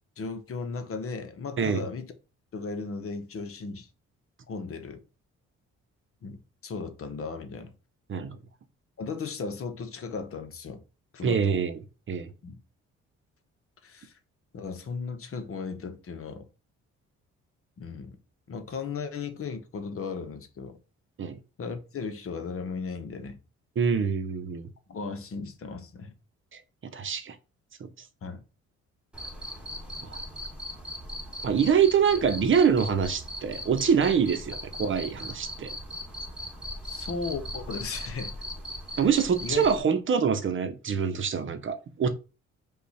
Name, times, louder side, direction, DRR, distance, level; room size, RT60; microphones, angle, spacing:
voice 1, 0.2-2.1 2.5-3.9 4.5-5.0 6.2-7.7 9.0-10.8 11.1-11.6 12.4-12.6 13.8-14.1 14.5-16.5 17.8-18.2 18.5-20.8 21.6-23.4 24.9-26.1 28.2-28.4 36.8-38.3 39.4-39.7, left 4 dB, 50° left, 0.9 m, -36 dB
voice 2, 11.2-11.8 12.1-12.3 21.2-21.4 23.8-24.7 26.9-27.4 27.8-27.9 30.0-30.2 31.4-35.7 39.0-42.1, right 7 dB, 45° right, 0.8 m, -25 dB
Cricket, 29.1-39.8, equal, 5° right, 1.4 m, -39 dB
5.3 x 2.4 x 4.1 m
supercardioid pair, 70°, 29 cm